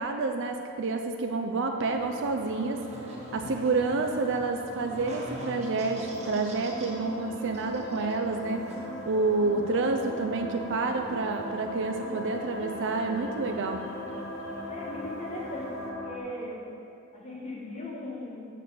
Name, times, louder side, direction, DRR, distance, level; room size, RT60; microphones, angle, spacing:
voice 1, 0.0-2.8 3.3-8.7 9.0-13.8, right 3 dB, 55° right, 4 dB, 0.5 m, -29 dB
sound 1, 1.7-16.2, left 1 dB, 60° left, 1.1 m, -39 dB
Buzz, 1.9-15.9, right 1 dB, 30° right, 1.1 m, -48 dB
voice 2, 14.7-16.6 17.1-18.4, left 1 dB, 30° left, -5 dB, 1.7 m, -38 dB
6.6 x 6.6 x 6.9 m, 2.6 s
head